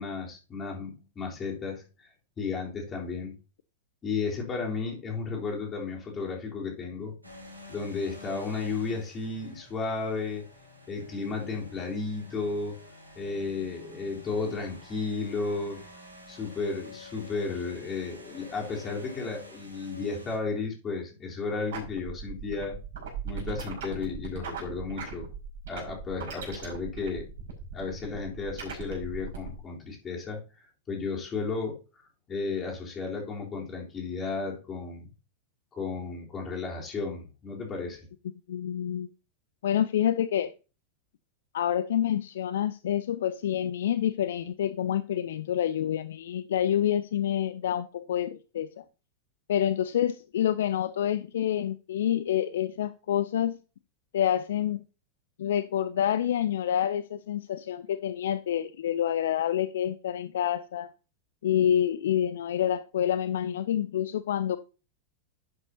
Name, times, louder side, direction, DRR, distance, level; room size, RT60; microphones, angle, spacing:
voice 1, 0.0-2.1 2.4-3.3 4.0-7.1 7.7-10.5 10.9-12.8 13.2-15.8 16.3-22.8 23.2-25.3 25.7-27.3 27.7-30.4 30.9-35.1 35.7-38.0, left 4 dB, 25° left, 3.8 m, -33 dB
sound 1, 7.2-20.4, left 2 dB, 85° right, 2.9 m, -49 dB
sound 2, 21.7-29.6, right 6 dB, 60° right, 5.4 m, -39 dB
voice 2, 38.5-39.1 39.6-40.5 41.5-48.8 49.5-53.6 54.1-54.8 55.4-60.9 61.4-64.6, left 10 dB, 60° left, 0.4 m, -27 dB
11.5 x 8.2 x 2.8 m
figure-of-eight pair, 90°, 0 cm